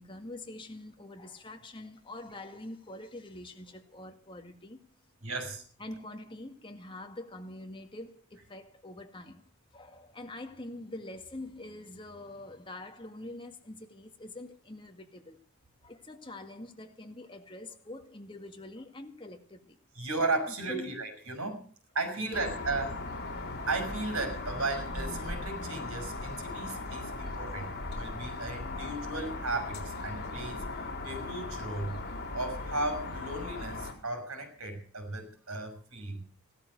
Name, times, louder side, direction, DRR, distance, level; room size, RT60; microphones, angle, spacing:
voice 1, 0.0-4.8 5.8-15.4 15.8-19.8 20.7-21.0 22.2-22.5, left 1 dB, 20° left, 2.1 m, -45 dB
voice 2, 5.2-5.6 20.0-21.7 21.9-23.0 23.7-30.6 31.0-32.0 32.3-36.2, right 2 dB, 70° right, 6.0 m, -35 dB
sound 1, 22.3-33.9, left 2 dB, 45° left, 4.1 m, -38 dB
16.5 x 13.0 x 6.6 m
head